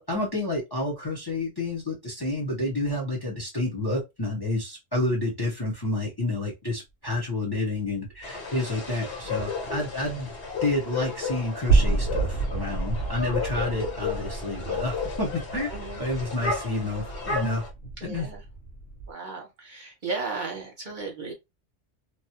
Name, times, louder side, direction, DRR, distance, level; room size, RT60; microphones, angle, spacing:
voice 1, 0.0-10.3 10.6-15.7 16.0-17.6 18.0-18.3, left 2 dB, 25° left, 0.7 m, -29 dB
sound 1, 8.1-8.2 8.5-19.1, right 3 dB, 85° left, 1.3 m, -30 dB
sound 2, 8.2-17.7, left 5 dB, 60° left, 1.2 m, -33 dB
voice 2, 15.7-16.1 18.0-18.4 19.1-21.3, right 3 dB, 45° right, 0.8 m, -35 dB
2.9 x 2.3 x 2.8 m
omnidirectional pair, 1.3 m